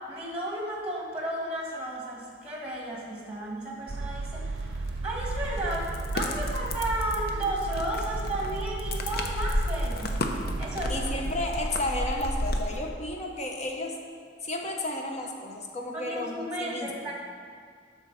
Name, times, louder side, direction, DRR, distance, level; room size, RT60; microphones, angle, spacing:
voice 1, 0.1-10.1 10.6-11.1 15.9-17.1, right 1 dB, 5° right, -2 dB, 1.5 m, -33 dB
sound 1, 3.9-11.5, right 3 dB, 75° right, 0.6 m, -34 dB
sound 2, 4.6-12.9, left 1 dB, 55° left, 0.8 m, -33 dB
voice 2, 10.9-14.0 14.4-17.1, left 1 dB, 40° left, 1 dB, 1.1 m, -33 dB
12.0 x 4.0 x 6.5 m, 2.1 s
head